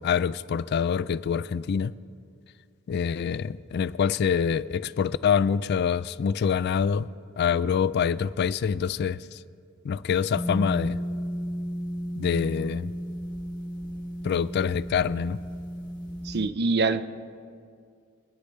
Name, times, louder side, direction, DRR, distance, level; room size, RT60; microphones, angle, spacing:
voice 1, 0.0-1.9 2.9-7.1 7.4-9.4 9.8-11.0 12.2-12.9 14.2-15.4, left 7 dB, 50° left, 0.3 m, -25 dB
sound 1, 10.3-16.5, equal, 20° left, 1.3 m, -34 dB
voice 2, 16.2-17.0, right 3 dB, 50° right, 0.5 m, -24 dB
23.5 x 9.8 x 3.3 m
head